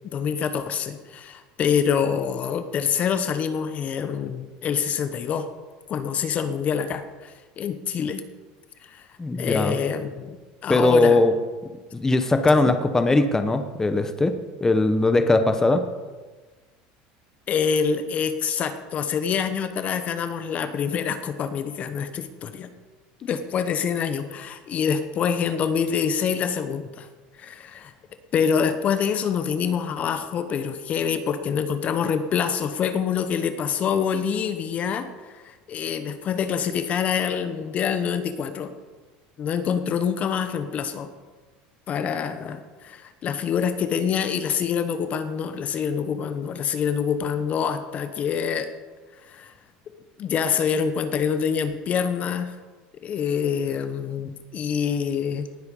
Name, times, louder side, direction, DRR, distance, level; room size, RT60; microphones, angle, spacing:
voice 1, 0.1-5.5 5.9-8.2 8.9-9.0 9.4-10.4 10.6-11.2 12.5-12.7 17.5-22.7 23.2-27.1 27.4-27.9 28.3-38.7 39.4-41.1 41.9-48.7 49.2-49.5 50.2-52.5 53.0-55.5, left 7 dB, 40° left, 10 dB, 1.0 m, -26 dB
voice 2, 9.2-9.8 10.7-11.3 11.9-15.9, left 2 dB, 15° left, 8 dB, 1.0 m, -20 dB
18.5 x 7.9 x 5.4 m, 1.3 s
supercardioid pair, 125°, 4 cm